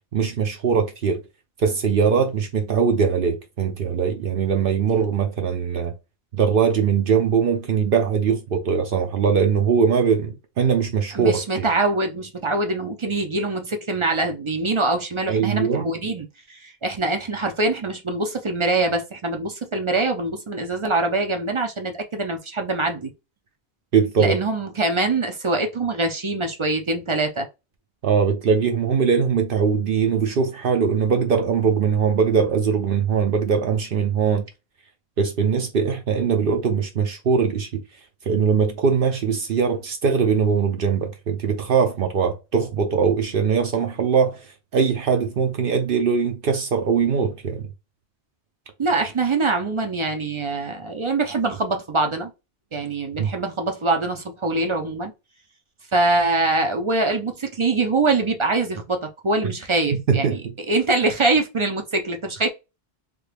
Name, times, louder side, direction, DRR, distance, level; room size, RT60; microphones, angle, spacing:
voice 1, 0.1-1.2 1.6-5.9 6.3-11.7 15.3-15.9 23.9-24.4 28.0-34.4 35.2-37.8 38.3-44.5 44.7-47.7 53.2-53.3 60.1-60.4, right 6 dB, 65° right, 0.8 m, -21 dB
voice 2, 11.1-23.1 24.2-27.5 48.8-52.3 52.7-55.1 55.9-60.4 60.7-62.5, right 3 dB, 40° right, 0.5 m, -24 dB
3.3 x 2.2 x 3.3 m
omnidirectional pair, 1.1 m